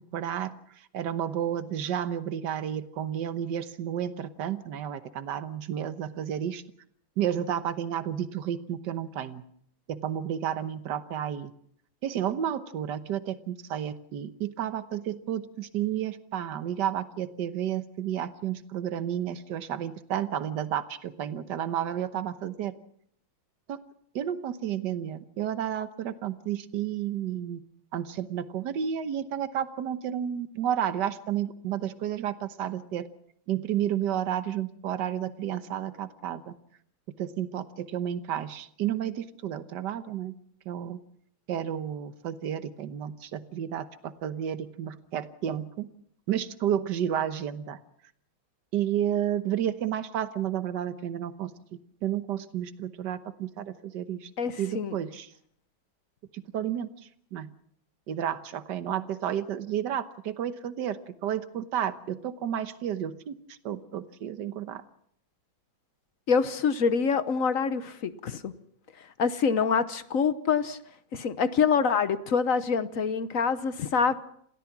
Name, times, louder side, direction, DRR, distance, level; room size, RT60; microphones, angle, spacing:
voice 1, 0.1-6.6 7.2-9.4 9.9-11.5 12.0-22.7 23.7-23.8 24.1-27.6 27.9-33.1 33.5-36.5 37.2-40.3 40.6-41.0 41.5-45.9 46.3-47.8 48.7-54.3 54.6-55.3 56.3-56.9 57.3-57.5 58.1-64.8, right 10 dB, 60° right, 11 dB, 1.6 m, -31 dB
voice 2, 54.4-55.0 66.3-68.5 69.2-70.8 71.1-74.2, left 6 dB, 50° left, 13 dB, 1.1 m, -26 dB
27.5 x 17.0 x 6.1 m, 0.68 s
omnidirectional pair, 2.2 m